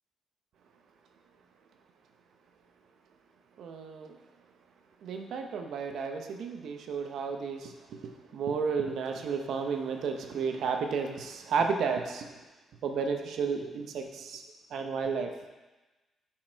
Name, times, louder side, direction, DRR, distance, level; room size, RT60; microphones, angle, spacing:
voice 1, 3.6-4.2 5.0-12.3 12.8-14.4 14.7-15.3, right 5 dB, 70° right, 4 dB, 0.7 m, -32 dB
7.4 x 4.7 x 4.5 m, 1.1 s
cardioid pair, 90°, 0 cm